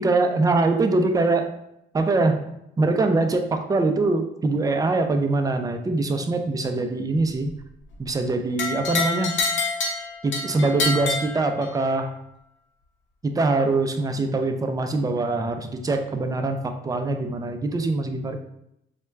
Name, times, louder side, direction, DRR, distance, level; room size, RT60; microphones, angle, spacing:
voice 1, 0.0-1.5 1.9-2.4 2.8-7.5 8.0-9.4 10.2-12.1 13.2-18.4, right 3 dB, 20° right, 6 dB, 0.3 m, -23 dB
sound 1, 8.6-12.0, left 3 dB, 70° left, 0.7 m, -27 dB
4.2 x 2.1 x 2.3 m, 0.79 s
cardioid pair, 90°, 20 cm